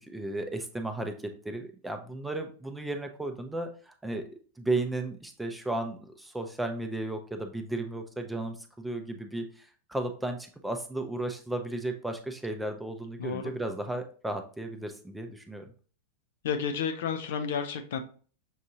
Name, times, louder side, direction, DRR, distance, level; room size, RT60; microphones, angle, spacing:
voice 1, 0.0-1.1 1.4-4.3 4.6-15.6, right 2 dB, 5° right, 5 dB, 0.6 m, -34 dB
voice 2, 13.2-13.5 16.4-18.0, left 6 dB, 55° left, 7 dB, 0.5 m, -31 dB
6.3 x 2.6 x 2.7 m, 0.40 s
figure-of-eight pair, 90°, 0 cm